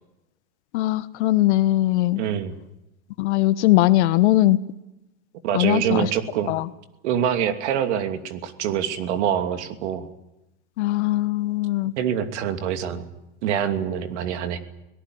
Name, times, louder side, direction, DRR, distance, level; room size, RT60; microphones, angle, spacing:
voice 1, 0.7-2.2 3.2-4.6 5.5-6.1 6.5-6.7 10.8-11.9, left 16 dB, 70° left, 15 dB, 1.3 m, -20 dB
voice 2, 2.2-2.6 5.4-6.6 7.0-10.1 12.0-13.0 13.4-14.6, right 9 dB, 70° right, 9 dB, 2.8 m, -25 dB
23.5 x 18.0 x 9.5 m, 0.94 s
hypercardioid pair, 115°, 35 cm